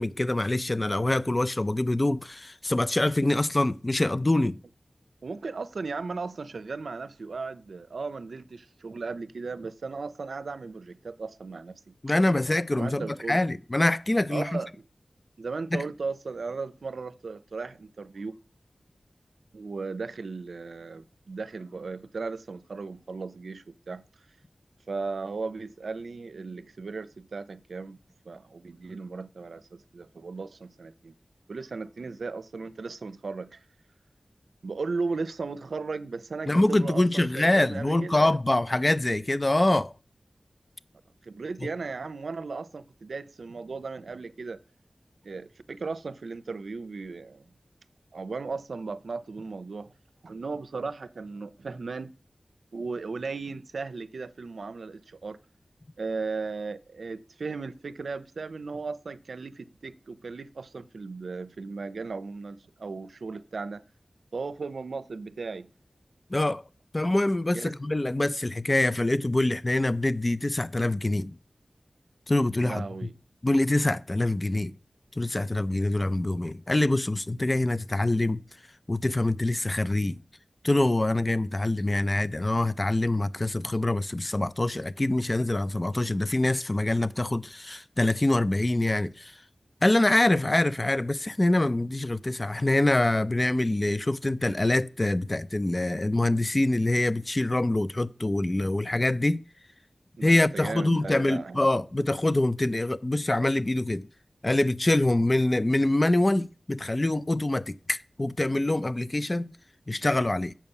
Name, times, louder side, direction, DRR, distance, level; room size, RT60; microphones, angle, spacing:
voice 1, 0.0-4.6 12.0-14.6 15.7-15.8 36.5-39.9 66.3-66.6 66.9-71.4 72.3-72.8 73.4-74.7 75.2-78.4 78.9-80.2 80.6-89.3 89.8-99.4 100.2-104.1 104.4-109.5 109.9-110.5, left 2 dB, 35° left, 0.4 m, -25 dB
voice 2, 5.2-11.9 12.3-12.4 12.8-13.4 14.3-14.8 15.4-18.4 19.5-24.0 24.9-28.0 28.3-31.1 31.5-33.6 34.6-38.3 41.2-44.6 45.2-47.5 48.1-49.9 50.2-52.1 52.7-55.4 56.0-63.8 64.3-65.7 67.5-67.7 72.6-73.1 100.2-101.7, right 4 dB, 90° right, 0.5 m, -36 dB
7.3 x 5.3 x 7.1 m
wide cardioid pair, 50°, 0 cm